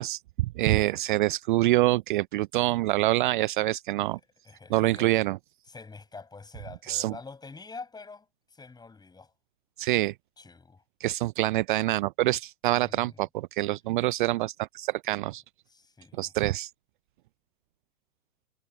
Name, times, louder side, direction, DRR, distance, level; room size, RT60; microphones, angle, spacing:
voice 1, 0.0-4.2 4.7-5.4 6.9-7.1 9.8-10.1 11.0-15.4 16.2-16.7, right 17 dB, 35° right, 0.6 m, -26 dB
voice 2, 4.5-5.1 5.7-9.3 10.4-10.8 12.7-13.2 15.7-16.3, left 4 dB, 10° left, 6.9 m, -46 dB
figure-of-eight pair, 105°, 41 cm